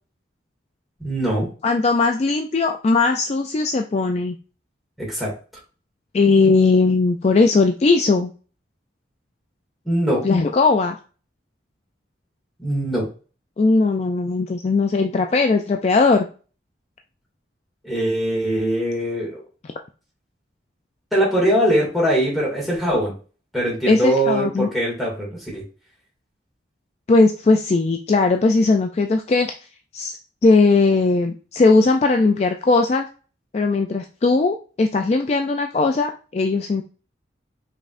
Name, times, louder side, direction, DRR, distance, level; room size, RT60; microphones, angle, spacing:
voice 1, 1.0-1.5 5.0-5.3 9.8-10.2 12.6-13.1 17.8-19.4 21.1-23.1 23.5-25.6, right 1 dB, ahead, -5 dB, 2.2 m, -21 dB
voice 2, 1.6-4.4 6.1-8.3 10.2-11.0 13.6-16.3 23.9-24.7 27.1-29.5 29.9-33.1 33.5-36.8, left 3 dB, 35° left, 4 dB, 0.3 m, -18 dB
5.2 x 3.7 x 2.5 m, 0.36 s
head